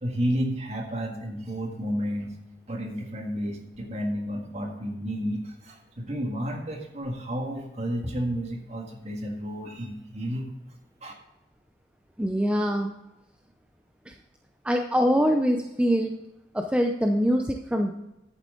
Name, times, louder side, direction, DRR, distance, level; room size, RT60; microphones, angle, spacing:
voice 1, 0.0-2.4 2.7-10.5 11.0-11.1, equal, 40° right, 2 dB, 1.8 m, -31 dB
voice 2, 12.2-12.9 14.6-16.2 16.5-17.9, equal, 5° right, 4 dB, 0.5 m, -23 dB
11.0 x 8.6 x 3.8 m, 0.92 s
head